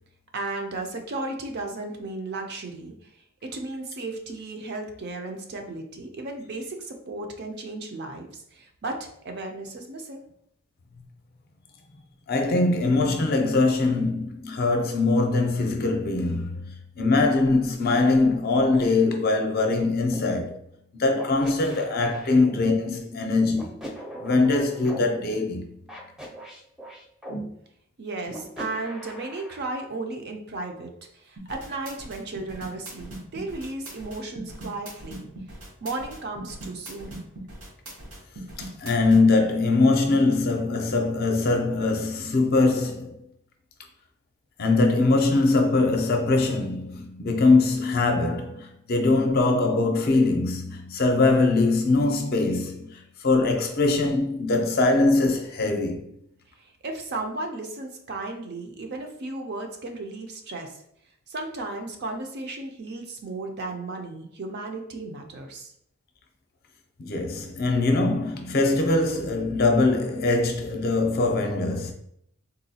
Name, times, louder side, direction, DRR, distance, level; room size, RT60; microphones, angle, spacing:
voice 1, 0.3-3.1 3.4-10.2 28.0-35.3 35.8-37.2 56.6-60.8 61.3-65.7, right 2 dB, 55° right, 0.5 m, -35 dB
voice 2, 12.3-16.7 17.0-20.5 20.9-23.9 24.2-25.7 38.6-43.2 44.6-56.0 67.0-71.9, left 3 dB, 50° left, 0.5 m, -22 dB
sound 1, 20.1-20.3 21.1-22.7 23.5-25.0 25.9-27.4 28.3-29.6, equal, 5° right, 0.5 m, -39 dB
sound 2, 31.4-39.2, right 1 dB, 90° right, 0.9 m, -40 dB
3.8 x 2.3 x 2.7 m
head